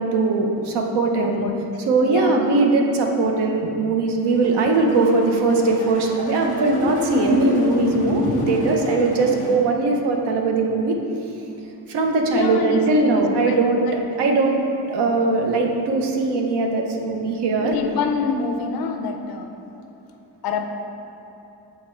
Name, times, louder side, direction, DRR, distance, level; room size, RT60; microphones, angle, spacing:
voice 1, 0.0-1.4 1.9-10.9 11.9-14.6 14.9-17.8, right 3 dB, 85° right, 2 dB, 0.8 m, -20 dB
voice 2, 2.0-2.4 12.2-13.6 13.9-14.3 17.6-19.6 20.4-20.6, left 5 dB, 65° left, 5 dB, 0.6 m, -26 dB
sound 1, 4.3-9.5, left 1 dB, 20° left, 1.0 m, -27 dB
7.3 x 3.6 x 4.5 m, 2.8 s
cardioid pair, 160°, 39 cm